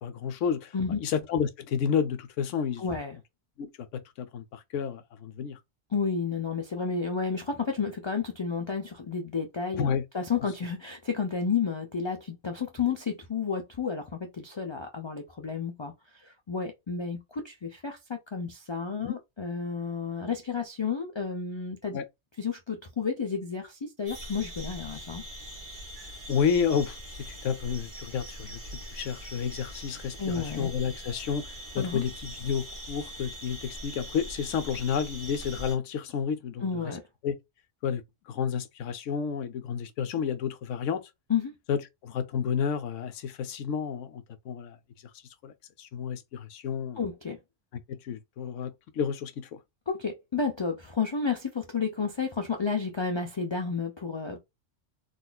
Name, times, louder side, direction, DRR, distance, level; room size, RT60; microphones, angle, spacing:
voice 1, 0.0-2.8 3.6-5.6 9.8-10.0 19.0-19.2 21.9-22.0 26.3-28.6 28.9-36.8 37.2-37.4 37.8-41.0 41.7-44.8 45.4-45.5 45.8-47.0 47.9-49.6, left 7 dB, 90° left, 1.0 m, -31 dB
voice 2, 2.8-3.2 5.9-22.0 22.4-25.2 30.2-30.7 31.8-32.0 36.6-37.0 41.3-41.5 47.0-47.4 49.9-54.4, left 5 dB, 45° left, 0.3 m, -31 dB
sound 1, 24.1-35.8, equal, 25° right, 1.5 m, -42 dB
3.9 x 2.5 x 2.2 m
omnidirectional pair, 1.3 m